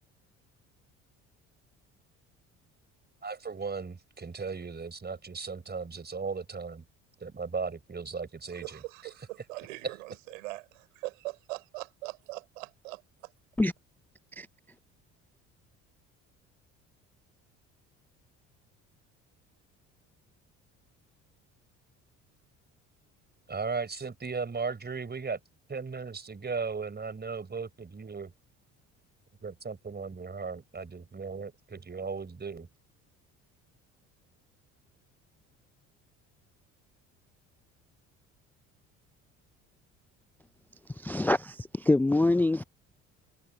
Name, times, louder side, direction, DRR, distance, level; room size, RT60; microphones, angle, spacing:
voice 1, 3.2-6.8 7.2-8.8 23.5-25.4 25.7-28.3 29.4-32.7, right 5 dB, 25° right, 4.6 m, -36 dB
voice 2, 8.5-13.3, right 22 dB, 80° right, 4.2 m, -42 dB
voice 3, 41.0-42.6, left 2 dB, 5° left, 0.4 m, -25 dB
hypercardioid pair, 60°, 37 cm